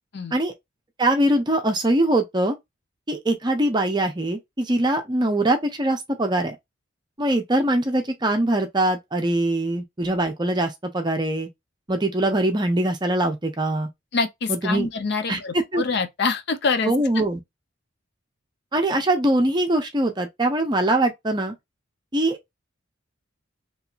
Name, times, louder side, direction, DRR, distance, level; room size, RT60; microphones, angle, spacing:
voice 1, 1.0-2.6 3.1-6.6 7.2-11.5 11.9-13.9 14.5-14.9 15.3-15.4 15.7-15.8 16.9-17.4 18.7-21.5 22.1-22.4, right 1 dB, 20° right, 0.6 m, -22 dB
voice 2, 14.1-16.9, left 4 dB, 55° left, 0.5 m, -25 dB
3.0 x 2.7 x 2.4 m
head